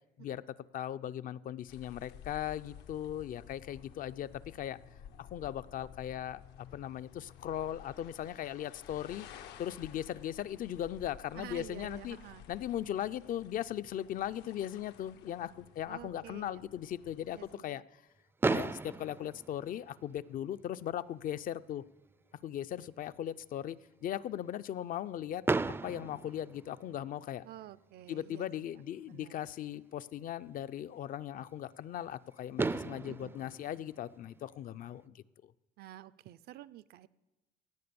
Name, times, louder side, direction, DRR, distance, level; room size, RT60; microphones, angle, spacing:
voice 1, 0.7-4.8 5.2-9.3 9.6-12.2 12.5-17.8 18.5-21.8 22.4-25.4 25.8-27.4 28.1-35.5, left 11 dB, 55° left, 14 dB, 0.5 m, -38 dB
sound 1, 1.7-17.6, left 9 dB, 85° left, 0.9 m, -54 dB
voice 2, 11.3-12.5 15.9-16.6 17.3-17.8 27.4-28.5 29.1-29.4 33.1-33.4 35.8-37.1, right 14 dB, 70° right, 17 dB, 0.5 m, -49 dB
Fireworks, 18.4-20.4 21.3-21.4 21.5-21.7 22.1-22.2 25.4-27.3 29.0-29.1 32.1-32.2 32.6-34.9, right 3 dB, 15° right, 0.4 m, -35 dB
17.0 x 8.6 x 6.9 m, 1.1 s
cardioid pair, 110°, 17 cm